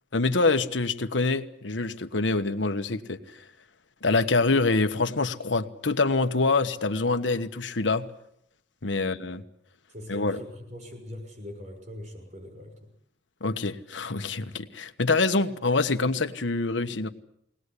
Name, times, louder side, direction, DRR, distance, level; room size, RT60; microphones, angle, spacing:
voice 1, 0.1-3.2 4.0-8.1 8.8-9.4 10.1-10.4 13.4-17.1, left 3 dB, 90° left, 8 dB, 1.3 m, -25 dB
voice 2, 9.9-12.9, left 1 dB, 40° right, 4 dB, 6.2 m, -42 dB
22.5 x 19.0 x 8.3 m, 0.74 s
head